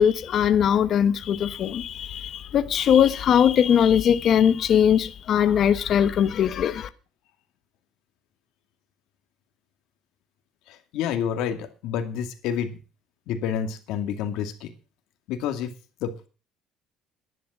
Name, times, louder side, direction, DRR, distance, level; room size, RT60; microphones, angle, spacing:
voice 1, 0.0-6.9, left 9 dB, 45° left, 1.0 m, -20 dB
voice 2, 10.7-12.8 13.3-14.7 15.3-15.7 16.0-16.3, left 8 dB, 75° left, 2.2 m, -29 dB
11.0 x 10.5 x 6.2 m
cardioid pair, 160°, 0 cm